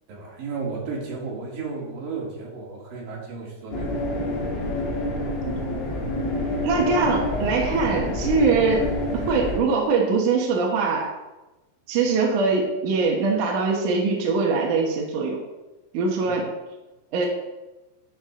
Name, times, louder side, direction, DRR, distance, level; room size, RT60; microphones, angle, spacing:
voice 1, 0.1-3.9 16.2-16.3, right 4 dB, 85° right, -3 dB, 3.8 m, -33 dB
sound 1, 3.7-9.6, left 1 dB, 55° left, 3.0 m, -27 dB
voice 2, 6.6-8.9 9.1-11.1 11.9-15.4 15.9-16.5 17.1-17.3, right 4 dB, 70° right, -1 dB, 2.6 m, -22 dB
11.0 x 7.2 x 3.7 m, 1.1 s
omnidirectional pair, 3.9 m